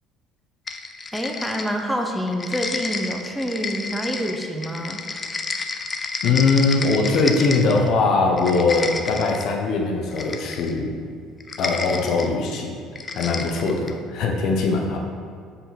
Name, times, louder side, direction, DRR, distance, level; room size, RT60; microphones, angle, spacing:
sound 1, 0.7-2.0 2.3-7.9 8.3-9.5 10.1-10.8 11.4-12.3 13.0-14.0, left 4 dB, 30° left, 0.5 m, -31 dB
voice 1, 1.1-5.0, equal, ahead, 2 dB, 0.7 m, -27 dB
voice 2, 6.2-10.9 11.6-12.8 13.1-15.0, left 3 dB, 65° left, 1 dB, 1.0 m, -21 dB
5.2 x 4.8 x 5.9 m, 2.2 s
supercardioid pair, 100°, 0 cm